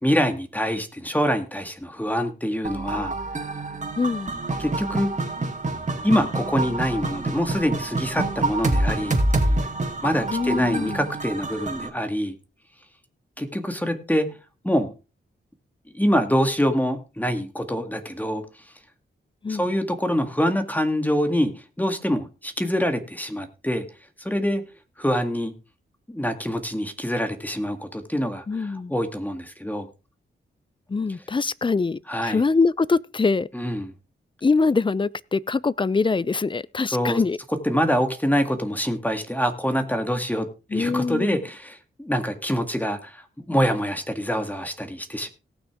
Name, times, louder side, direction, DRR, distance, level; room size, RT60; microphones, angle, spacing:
voice 1, 0.0-3.1 4.6-5.1 6.0-9.2 10.0-12.3 13.4-14.3 14.6-14.9 15.9-18.4 19.5-21.5 21.8-23.8 24.2-24.6 25.0-25.5 26.1-29.9 32.1-32.4 33.5-33.9 36.9-37.2 37.6-45.3, equal, 10° left, 1.9 m, -25 dB
sound 1, 2.6-11.9, right 2 dB, 35° right, 2.6 m, -27 dB
voice 2, 4.0-4.3 10.3-11.0 19.4-19.7 28.5-28.9 30.9-33.5 34.4-37.4 40.7-41.4, left 4 dB, 25° left, 0.5 m, -23 dB
18.0 x 6.3 x 3.6 m
cardioid pair, 70°, 21 cm